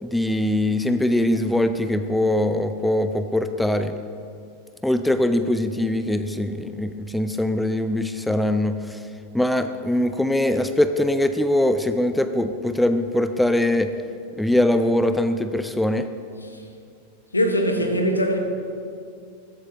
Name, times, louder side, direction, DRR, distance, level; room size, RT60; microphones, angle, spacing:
voice 1, 0.0-3.9 4.8-9.0 9.3-13.9 14.3-16.1, left 1 dB, 5° left, 0.5 m, -22 dB
voice 2, 17.3-18.4, equal, 80° left, 1.4 m, -22 dB
15.5 x 14.5 x 3.0 m
figure-of-eight pair, 90°, 0 cm